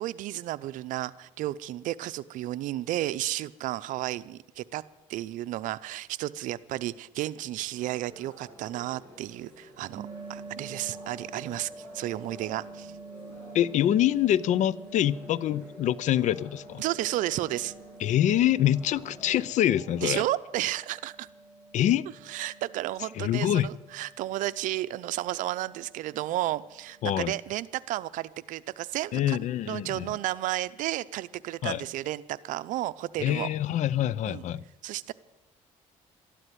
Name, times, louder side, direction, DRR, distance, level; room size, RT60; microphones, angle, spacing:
voice 1, 0.0-4.8 5.1-12.9 16.8-17.7 20.0-21.3 22.3-29.4 29.6-33.5 34.3-34.4 34.8-35.1, right 15 dB, 80° right, 15 dB, 0.6 m, -32 dB
sound 1, 7.7-20.2, equal, 15° left, 7.0 m, -52 dB
sound 2, 9.9-27.2, right 3 dB, 50° right, 3.1 m, -48 dB
voice 2, 13.5-16.8 18.0-20.2 21.7-22.0 23.2-23.7 27.0-27.3 29.1-30.1 31.6-31.8 33.2-34.6, left 12 dB, 65° left, 22 dB, 0.5 m, -25 dB
13.0 x 11.0 x 9.2 m, 0.98 s
cardioid pair, 100°, 13 cm